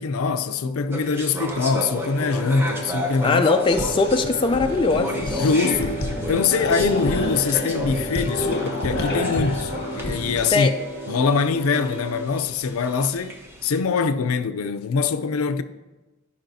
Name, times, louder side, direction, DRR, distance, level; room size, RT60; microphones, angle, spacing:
voice 1, 0.0-3.4 5.4-5.9 6.3-10.7 11.1-15.6, left 5 dB, 80° left, 0.5 m, -23 dB
sound 1, 0.9-13.8, equal, 10° right, 0.9 m, -33 dB
sound 2, 1.8-12.2, equal, 45° right, 0.8 m, -35 dB
voice 2, 3.2-5.5 10.5-10.7, left 4 dB, 25° left, 0.4 m, -21 dB
sound 3, 3.7-10.5, left 1 dB, 55° left, 1.2 m, -29 dB
14.5 x 5.3 x 2.7 m
head